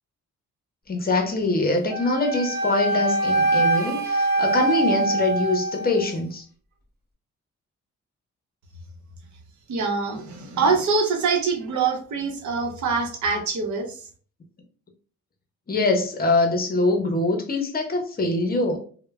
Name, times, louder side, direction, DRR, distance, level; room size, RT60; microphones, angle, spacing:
voice 1, 0.9-6.4 15.7-18.8, left 2 dB, 30° left, 0.6 m, -23 dB
Wind instrument woodwind instrument, 1.9-6.2, right 2 dB, 35° right, 0.8 m, -24 dB
voice 2, 9.7-14.0, right 4 dB, 75° right, 0.7 m, -24 dB
3.1 x 2.1 x 2.2 m
cardioid pair, 120°, 29 cm